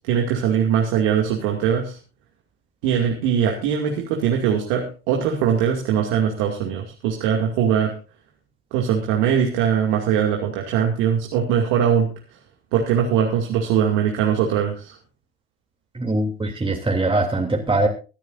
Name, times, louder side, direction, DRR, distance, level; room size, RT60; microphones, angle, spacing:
voice 1, 0.0-2.0 2.8-7.9 8.7-12.1 12.7-15.0, right 8 dB, 70° right, 1 dB, 2.5 m, -21 dB
voice 2, 15.9-17.9, right 2 dB, 15° right, 0 dB, 3.1 m, -22 dB
25.0 x 9.4 x 2.6 m, 0.34 s
hypercardioid pair, 70°, 32 cm